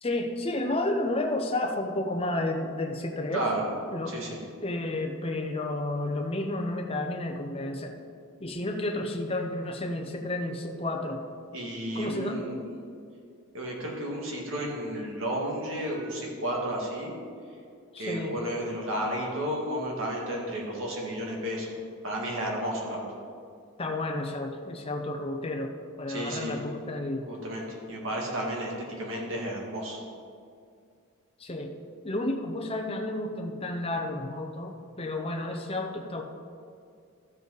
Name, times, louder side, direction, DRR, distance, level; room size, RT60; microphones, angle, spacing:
voice 1, 0.0-3.5 3.9-4.1 4.6-8.0 8.4-11.2 11.9-12.4 17.9-18.4 23.8-27.3 31.4-31.7 32.0-36.2, left 2 dB, 25° left, 3 dB, 0.8 m, -31 dB
voice 2, 3.3-3.7 4.1-4.4 11.5-12.6 13.5-17.1 18.0-21.7 22.0-23.0 26.1-26.6 27.3-30.0, right 1 dB, 65° right, -2 dB, 1.9 m, -32 dB
13.0 x 7.8 x 4.0 m, 2.3 s
head